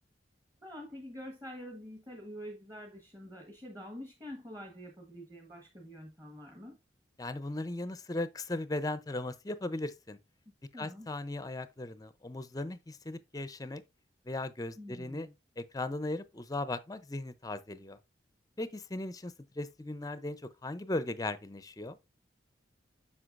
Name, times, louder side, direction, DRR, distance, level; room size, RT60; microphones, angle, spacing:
voice 1, 0.6-6.8 10.7-11.1 14.8-15.3, equal, 20° right, 1.2 m, -46 dB
voice 2, 7.2-10.2 10.8-13.8 14.3-15.3 15.6-18.0 18.6-20.4 20.6-22.0, left 2 dB, 20° left, 0.5 m, -37 dB
7.7 x 5.8 x 2.5 m
head